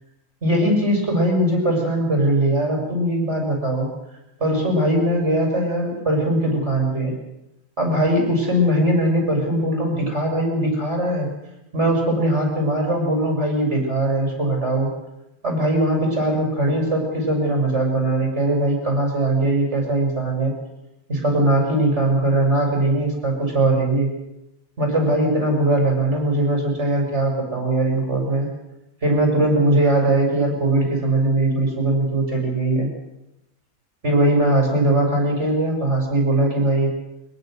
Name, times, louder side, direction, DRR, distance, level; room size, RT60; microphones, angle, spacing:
voice 1, 0.4-3.9 4.4-7.1 7.8-11.3 11.7-14.9 15.4-20.5 21.1-24.1 24.8-28.5 29.0-32.9 34.0-36.9, right 1 dB, 50° right, 1 dB, 7.0 m, -20 dB
24.0 x 22.0 x 6.6 m, 0.91 s
omnidirectional pair, 1.6 m